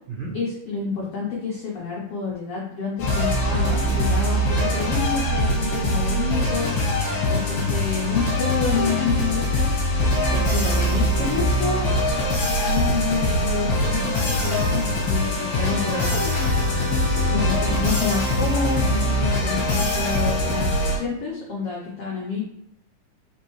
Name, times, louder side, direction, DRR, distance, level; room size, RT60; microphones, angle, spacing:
voice 1, 0.3-9.7 10.3-11.9 12.5-16.2 17.3-22.4, left 5 dB, 90° left, -4 dB, 1.3 m, -29 dB
sound 1, 3.0-21.0, left 1 dB, 60° left, 1.8 m, -22 dB
voice 2, 6.7-7.2 15.9-17.3, right 4 dB, 80° right, -6 dB, 1.1 m, -35 dB
4.3 x 3.9 x 3.1 m, 0.76 s
omnidirectional pair, 3.8 m